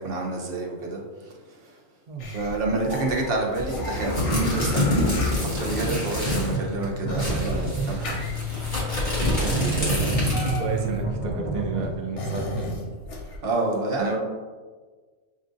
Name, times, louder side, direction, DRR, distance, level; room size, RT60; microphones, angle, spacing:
voice 1, 0.0-1.8 2.3-8.2 13.3-14.2, right 2 dB, 50° right, -1 dB, 0.8 m, -28 dB
sound 1, 2.2-13.4, left 2 dB, 65° left, 1.0 m, -36 dB
sound 2, 3.5-6.6 6.8-6.9 7.2-10.7, left 2 dB, 40° left, 1.3 m, -26 dB
sound 3, 6.1-11.9, right 3 dB, 15° right, 0.6 m, -30 dB
voice 2, 9.3-12.7, right 4 dB, 70° right, 1 dB, 0.4 m, -31 dB
6.4 x 2.4 x 2.5 m, 1.4 s
omnidirectional pair, 1.4 m